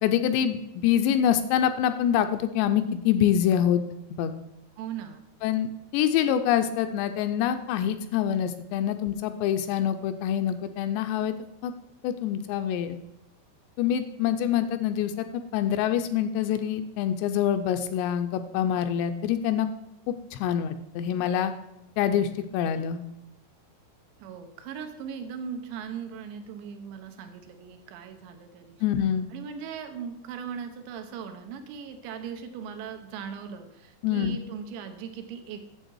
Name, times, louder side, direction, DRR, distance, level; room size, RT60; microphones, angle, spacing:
voice 1, 0.0-3.8 4.2-4.3 5.4-5.7 5.9-11.3 11.6-11.7 12.0-13.0 13.8-19.7 20.1-21.5 22.0-23.0 28.8-29.3 34.0-34.4, left 10 dB, 85° left, 8 dB, 2.6 m, -25 dB
voice 2, 4.8-5.3 24.2-28.8 29.3-35.6, right 7 dB, 80° right, 6 dB, 3.0 m, -39 dB
9.1 x 7.3 x 4.6 m, 0.88 s
omnidirectional pair, 5.1 m